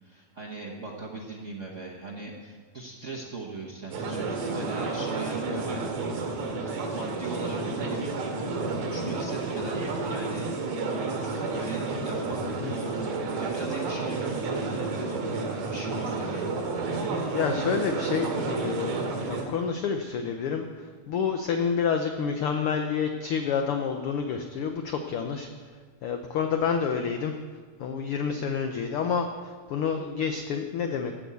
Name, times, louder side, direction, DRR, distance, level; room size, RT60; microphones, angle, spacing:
voice 1, 0.0-5.8 6.5-8.1 8.5-10.5 11.2-15.2 15.7-16.5, right 3 dB, 60° right, -2 dB, 0.7 m, -39 dB
sound 1, 3.9-19.4, right 3 dB, 80° right, 3.4 m, -31 dB
voice 2, 17.0-19.0 19.3-20.7 21.1-25.5 26.0-27.3 27.8-29.3 29.7-31.1, left 6 dB, 80° left, 5 dB, 1.2 m, -28 dB
15.0 x 6.3 x 8.2 m, 1.5 s
omnidirectional pair, 3.4 m